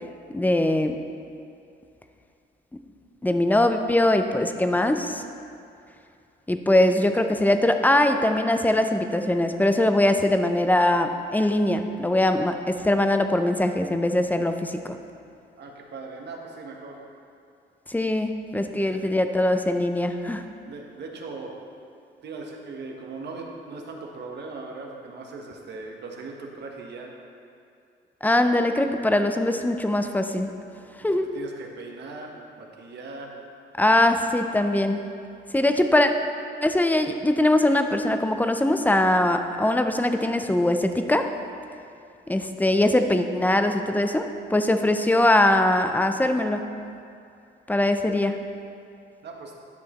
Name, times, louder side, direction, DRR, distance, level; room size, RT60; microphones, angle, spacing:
voice 1, 0.3-1.0 3.2-5.2 6.5-15.0 17.9-20.4 28.2-30.5 31.0-31.3 33.8-35.0 35.5-36.1 36.6-41.3 42.3-46.7 47.7-48.4, left 1 dB, 10° left, 7 dB, 0.5 m, -22 dB
voice 2, 15.6-17.0 18.8-19.0 20.7-21.6 22.2-27.1 31.3-33.4 36.0-36.1 49.2-49.5, right 3 dB, 60° right, 1 dB, 1.2 m, -39 dB
10.5 x 6.2 x 3.0 m, 2.5 s
cardioid pair, 90°, 20 cm